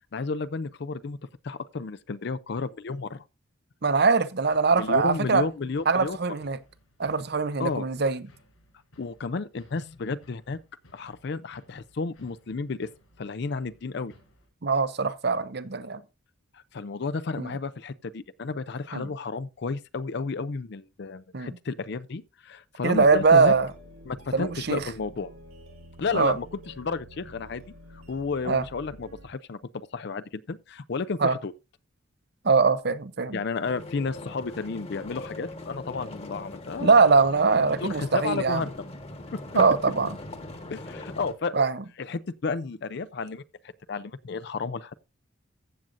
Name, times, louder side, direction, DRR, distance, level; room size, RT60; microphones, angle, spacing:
voice 1, 0.1-1.2 1.4-3.2 4.8-6.2 7.6-7.9 9.0-10.6 10.9-12.9 13.2-14.1 16.5-23.5 24.1-25.3 26.0-27.6 27.9-31.5 33.3-37.0 37.8-38.7 39.3-39.4 40.7-41.7 42.0-43.4 43.9-44.9, left 4 dB, 55° left, 0.5 m, -32 dB
voice 2, 3.8-5.4 5.9-6.6 7.0-8.2 14.6-16.0 17.4-17.5 18.9-19.1 21.3-21.5 22.8-23.7 24.3-24.8 26.1-26.4 28.4-28.6 31.2-31.4 32.4-33.4 36.8-38.6 39.6-40.2 41.5-41.8, right 4 dB, 50° right, 0.7 m, -22 dB
sound 1, 4.4-14.5, equal, 85° left, 6.1 m, -60 dB
sound 2, 22.9-29.3, right 1 dB, 85° right, 2.5 m, -49 dB
sound 3, 33.6-41.3, left 2 dB, 30° left, 1.3 m, -40 dB
15.0 x 7.6 x 2.5 m
head